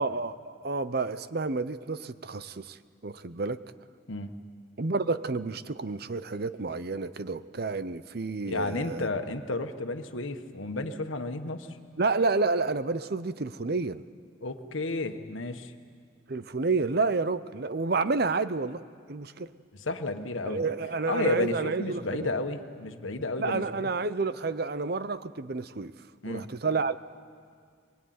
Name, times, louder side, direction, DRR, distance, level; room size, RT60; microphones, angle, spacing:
voice 1, 0.0-2.8 3.0-3.6 4.8-9.1 12.0-14.0 16.3-18.8 19.1-19.5 20.4-22.3 23.4-25.9 26.2-27.0, right 3 dB, 50° right, 14 dB, 0.7 m, -30 dB
voice 2, 8.5-11.7 14.4-15.7 19.8-20.7 21.1-23.9 26.2-26.5, left 2 dB, 90° left, 7 dB, 1.5 m, -32 dB
23.0 x 22.5 x 9.5 m, 2.1 s
head